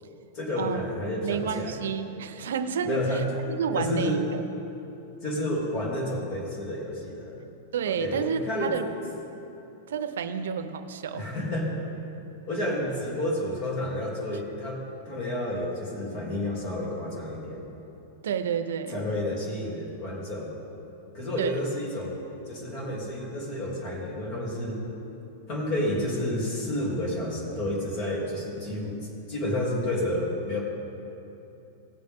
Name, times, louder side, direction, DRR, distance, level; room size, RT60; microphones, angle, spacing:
voice 1, 0.3-1.8 2.8-3.4 3.7-4.2 5.2-7.4 7.8-8.8 11.1-11.8 12.5-17.7 18.9-20.5 21.1-24.8 25.5-30.6, left 1 dB, 40° left, -3 dB, 2.9 m, -30 dB
voice 2, 1.2-3.2 3.5-4.4 7.7-8.9 9.9-11.2 18.2-19.0 21.4-21.6, right 7 dB, 85° right, 10 dB, 0.7 m, -30 dB
17.5 x 7.8 x 3.6 m, 2.9 s
supercardioid pair, 155°, 0 cm